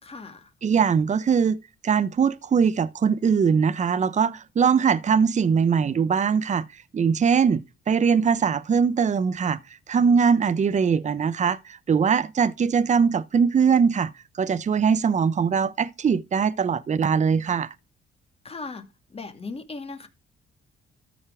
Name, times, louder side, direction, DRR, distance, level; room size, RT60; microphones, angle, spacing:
voice 1, 0.0-0.5 18.4-18.8 19.1-20.1, left 3 dB, 30° left, 2.3 m, -37 dB
voice 2, 0.6-1.6 1.8-6.6 6.9-9.6 9.9-14.1 14.4-17.7, right 6 dB, 35° right, 0.8 m, -21 dB
13.5 x 5.4 x 4.8 m
cardioid pair, 90°, 20 cm